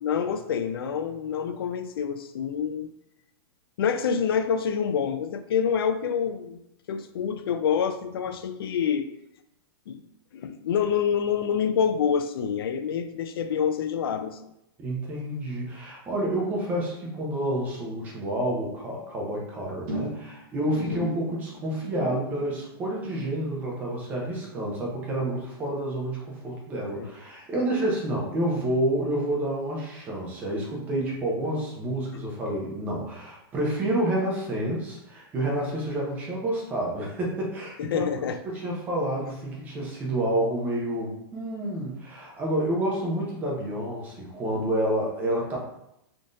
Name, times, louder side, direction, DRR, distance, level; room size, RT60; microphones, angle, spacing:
voice 1, 0.0-2.9 3.8-6.6 6.9-9.1 9.9-10.0 10.3-14.4 20.7-21.0 27.0-27.1 37.8-38.4, left 7 dB, 65° left, 9 dB, 0.4 m, -27 dB
voice 2, 14.8-38.3 38.6-45.6, right 1 dB, 10° right, -2 dB, 0.5 m, -29 dB
sound 1, 19.9-26.5 26.7-27.1 27.5-27.6, right 1 dB, 30° right, 0.9 m, -40 dB
3.6 x 2.6 x 2.4 m, 0.81 s
supercardioid pair, 170°, 13 cm